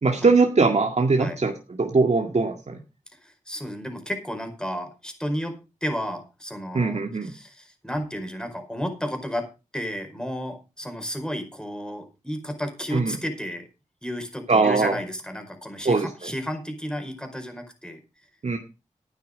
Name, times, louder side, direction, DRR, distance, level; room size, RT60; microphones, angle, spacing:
voice 1, 0.0-1.5 1.8-2.8 6.7-7.3 12.9-13.1 14.5-15.0 15.9-16.1 18.4-18.6, right 4 dB, 55° right, 4 dB, 2.0 m, -21 dB
voice 2, 3.2-9.5 9.7-13.6 14.0-18.0, equal, 5° left, 6 dB, 4.8 m, -32 dB
12.0 x 9.5 x 5.1 m, 0.30 s
cardioid pair, 50°, 13 cm